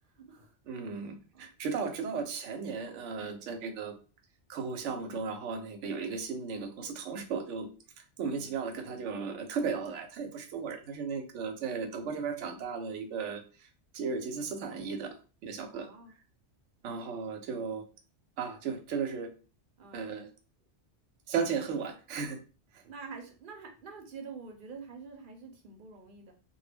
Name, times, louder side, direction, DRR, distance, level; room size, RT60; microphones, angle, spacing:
voice 1, 0.1-0.5 1.3-1.5 8.2-8.5 15.7-16.1 19.8-20.1 22.8-26.3, right 4 dB, 55° right, 2 dB, 0.7 m, -47 dB
voice 2, 0.7-3.9 4.5-7.7 8.2-13.7 13.9-15.2 15.4-15.9 16.8-17.8 18.4-19.3 19.9-20.3 21.3-22.4 22.7-22.8, right 5 dB, 90° right, 6 dB, 0.9 m, -35 dB
2.2 x 2.0 x 3.3 m, 0.35 s
omnidirectional pair, 1.2 m